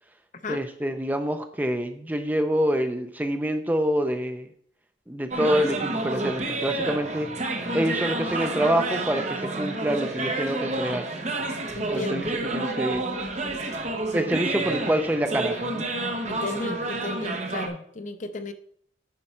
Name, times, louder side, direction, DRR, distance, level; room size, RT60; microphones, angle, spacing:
voice 1, 0.5-4.5 5.1-7.3 7.7-11.1 11.9-12.3 12.5-13.0 14.1-15.9, equal, 10° right, 7 dB, 0.5 m, -26 dB
sound 1, 5.3-17.7, right 2 dB, 35° right, 1.0 m, -29 dB
voice 2, 11.7-12.3 16.3-18.5, left 2 dB, 40° left, 9 dB, 0.6 m, -34 dB
9.6 x 5.5 x 4.4 m, 0.63 s
head